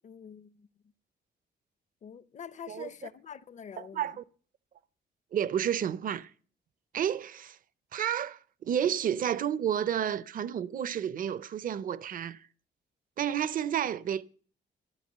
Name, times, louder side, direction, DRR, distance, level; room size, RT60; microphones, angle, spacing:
voice 1, 0.0-0.7 2.0-4.2, left 7 dB, 40° left, 0.6 m, -46 dB
voice 2, 3.8-4.2 5.3-6.3 6.9-7.6 7.9-12.5 13.2-14.2, right 9 dB, 50° right, 0.6 m, -31 dB
14.0 x 8.6 x 7.3 m
cardioid pair, 145°, 19 cm